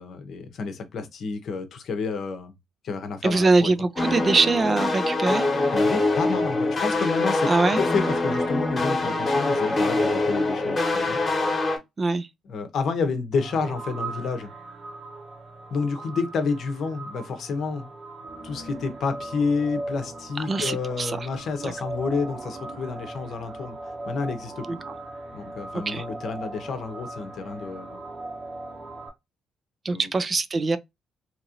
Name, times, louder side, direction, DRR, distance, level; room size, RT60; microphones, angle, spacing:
voice 1, 0.0-2.5 2.8-3.7 5.7-11.2 12.5-14.5 15.7-17.9 18.4-24.8 25.3-28.0 29.9-30.0, left 4 dB, 65° left, 0.7 m, -29 dB
voice 2, 3.2-5.4 7.5-7.8 12.0-12.3 20.5-21.2 21.6-21.7 24.7-24.8 25.7-26.0 29.8-30.8, right 3 dB, 35° right, 0.3 m, -23 dB
sound 1, 4.0-11.8, left 2 dB, 30° left, 1.0 m, -24 dB
sound 2, 13.3-29.1, right 2 dB, 55° right, 0.9 m, -38 dB
2.9 x 2.5 x 2.8 m
cardioid pair, 90°, 0 cm